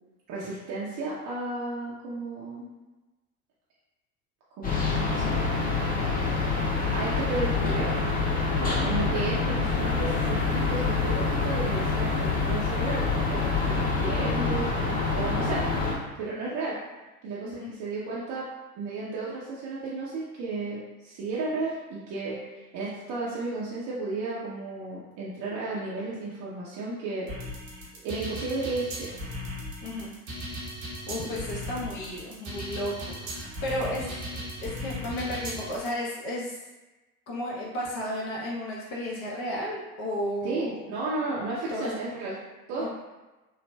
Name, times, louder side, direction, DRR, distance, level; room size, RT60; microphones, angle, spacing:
voice 1, 0.3-2.7 4.6-6.0 6.9-7.9 8.8-16.8 17.2-18.5 18.7-27.3 27.9-29.1 40.4-42.3 42.7-42.9, right 3 dB, 45° right, -7 dB, 0.7 m, -33 dB
sound 1, 4.6-15.9, left 4 dB, 20° left, 0.8 m, -26 dB
sound 2, 27.3-35.9, equal, 70° right, 0.9 m, -37 dB
voice 2, 29.8-30.1 31.1-36.6 37.3-40.8 41.7-42.0 42.8-42.9, left 1 dB, 55° left, -4 dB, 1.0 m, -33 dB
3.2 x 2.0 x 2.2 m, 1.1 s
figure-of-eight pair, 65°, 43 cm